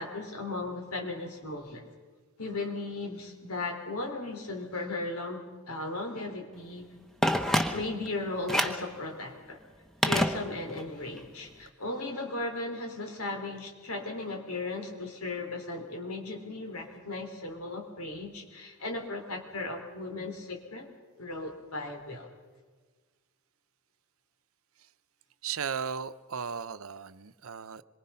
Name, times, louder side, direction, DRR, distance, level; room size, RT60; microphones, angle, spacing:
voice 1, 0.0-1.8 2.4-6.9 7.7-9.6 10.0-20.9 21.2-22.3, left 2 dB, 90° left, 3 dB, 3.8 m, -36 dB
Telephone, 7.2-8.1 8.5-8.9 10.0-10.9 11.2-11.3, equal, ahead, 1.0 m, -27 dB
voice 2, 25.4-27.8, right 6 dB, 75° right, 13 dB, 0.7 m, -36 dB
26.0 x 23.0 x 5.7 m, 1.4 s
head